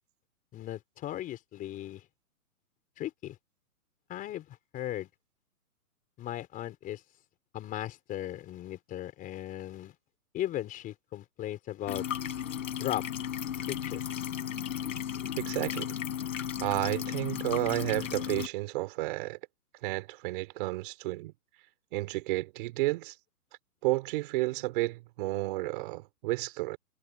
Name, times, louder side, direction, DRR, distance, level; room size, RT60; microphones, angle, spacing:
voice 1, 0.5-2.0 3.0-3.4 4.1-5.1 6.2-7.0 7.5-9.9 10.3-12.1 12.7-13.0 13.7-14.0, left 13 dB, 20° left, 4.4 m, -37 dB
sound 1, 11.9-18.5, left 9 dB, 60° left, 4.8 m, -35 dB
voice 2, 15.4-15.9 16.6-19.4 19.8-21.3 21.9-23.1 23.8-26.8, right 20 dB, 35° right, 3.2 m, -31 dB
hypercardioid pair, 155°, 44 cm